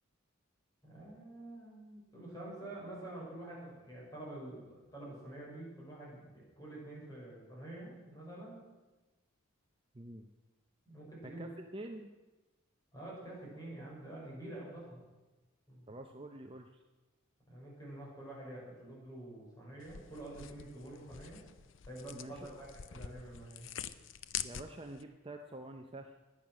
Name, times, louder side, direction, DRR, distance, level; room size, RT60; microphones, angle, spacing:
voice 1, 0.8-8.6 10.9-11.5 12.9-15.0 15.7-16.0 17.5-21.4 21.9-22.7 22.9-23.7, right 1 dB, 15° left, -4 dB, 5.7 m, -47 dB
voice 2, 9.9-10.3 11.2-12.1 15.9-16.8 22.1-22.5 24.4-26.1, right 1 dB, 25° right, 4 dB, 0.7 m, -47 dB
sound 1, 19.8-25.0, left 9 dB, 60° left, 0.5 m, -45 dB
16.0 x 10.5 x 6.1 m, 1.2 s
head